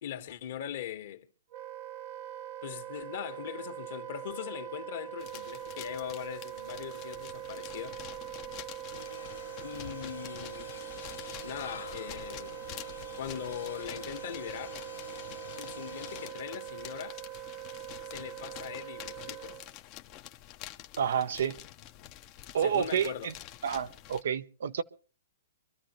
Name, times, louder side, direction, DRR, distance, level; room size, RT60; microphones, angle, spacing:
voice 1, 0.0-1.3 2.6-8.0 9.6-10.8 11.4-12.6 13.2-14.8 15.6-17.2 18.1-19.6 22.6-23.3, left 10 dB, 60° left, 1.7 m, -40 dB
Wind instrument woodwind instrument, 1.5-19.7, right 13 dB, 45° right, 0.9 m, -43 dB
sound 1, 5.2-24.2, left 13 dB, 35° left, 0.9 m, -48 dB
sound 2, 8.9-16.3, left 6 dB, 90° left, 1.8 m, -47 dB
voice 2, 21.0-21.6 22.5-23.3 23.6-24.8, right 8 dB, 70° right, 0.9 m, -29 dB
24.5 x 13.0 x 3.1 m
hypercardioid pair, 135°, 0 cm